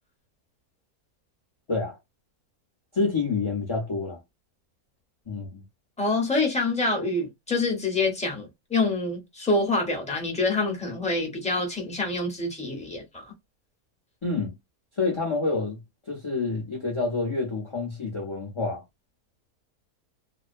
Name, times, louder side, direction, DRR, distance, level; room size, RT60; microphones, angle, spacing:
voice 1, 2.9-4.2 5.3-5.6 14.2-14.5 15.0-15.8 16.1-18.8, left 3 dB, 35° left, 0.4 m, -28 dB
voice 2, 6.0-13.3, left 2 dB, 5° left, 0.7 m, -26 dB
2.5 x 2.1 x 2.5 m
omnidirectional pair, 1.7 m